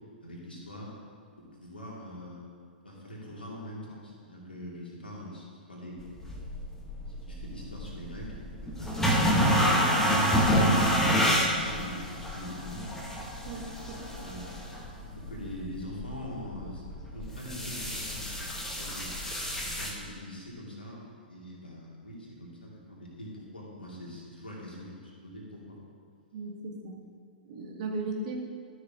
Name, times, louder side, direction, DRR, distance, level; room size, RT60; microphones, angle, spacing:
voice 1, 0.2-0.9 1.4-2.4 2.8-6.1 7.2-11.2 11.6-12.8 14.1-14.5 15.2-16.8 17.1-18.3 18.6-19.1 19.8-25.8, left 1 dB, 80° left, -4 dB, 2.6 m, -43 dB
sound 1, 6.0-19.9, equal, 5° left, 1.2 m, -29 dB
voice 2, 13.4-14.0 26.3-27.0 27.4-28.4, right 3 dB, 45° right, 0 dB, 1.6 m, -36 dB
12.5 x 6.5 x 3.7 m, 2.1 s
figure-of-eight pair, 110°, 5 cm